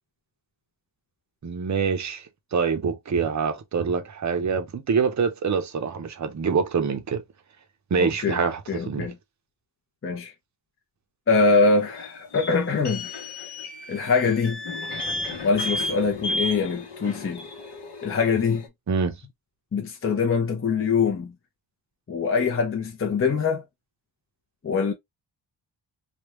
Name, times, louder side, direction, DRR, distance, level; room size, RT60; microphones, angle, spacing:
voice 1, 1.4-2.3 2.5-7.2 7.9-9.1 18.9-19.1, right 5 dB, 35° right, 0.7 m, -25 dB
voice 2, 8.0-8.4 8.7-9.2 10.0-10.3 11.3-13.1 13.9-14.6 15.4-17.4 18.0-18.6 19.7-21.3 22.1-23.6 24.6-24.9, left 4 dB, 30° left, 0.7 m, -23 dB
sound 1, 11.4-18.7, left 1 dB, 55° left, 1.0 m, -33 dB
3.5 x 2.3 x 3.0 m
wide cardioid pair, 110°, 48 cm